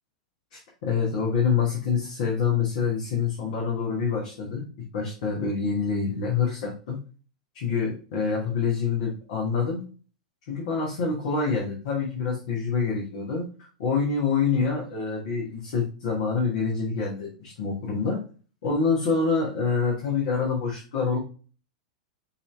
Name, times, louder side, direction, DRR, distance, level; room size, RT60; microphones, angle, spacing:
voice 1, 0.5-4.6 4.9-7.0 7.5-9.8 10.5-13.4 13.8-18.2 18.6-21.2, left 5 dB, 55° left, -2 dB, 1.2 m, -26 dB
5.4 x 2.8 x 3.2 m, 0.38 s
figure-of-eight pair, 95°, 4 cm